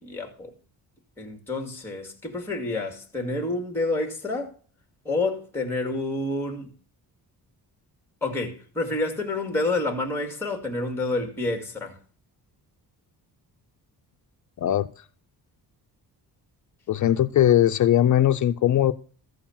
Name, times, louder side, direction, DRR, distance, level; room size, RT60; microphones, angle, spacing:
voice 1, 0.0-0.5 1.2-4.5 5.0-6.7 8.2-12.0, left 2 dB, 5° left, 2.4 m, -28 dB
voice 2, 16.9-18.9, left 11 dB, 50° left, 0.5 m, -20 dB
14.5 x 4.8 x 7.3 m
wide cardioid pair, 170°, 39 cm